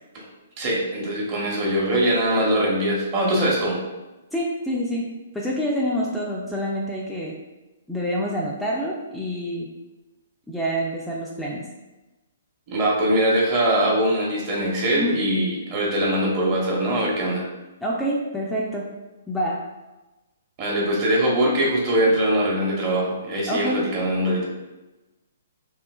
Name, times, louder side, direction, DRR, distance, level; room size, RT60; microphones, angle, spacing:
voice 1, 0.6-3.8 12.7-17.4 20.6-24.5, right 1 dB, 40° right, -3 dB, 0.9 m, -22 dB
voice 2, 4.3-5.1 5.3-7.4 7.9-9.7 10.5-11.6 14.9-15.2 17.8-18.9 19.3-19.6 23.5-23.9, equal, 5° left, -5 dB, 0.4 m, -27 dB
3.1 x 2.8 x 2.2 m, 1.1 s
hypercardioid pair, 130°, 0 cm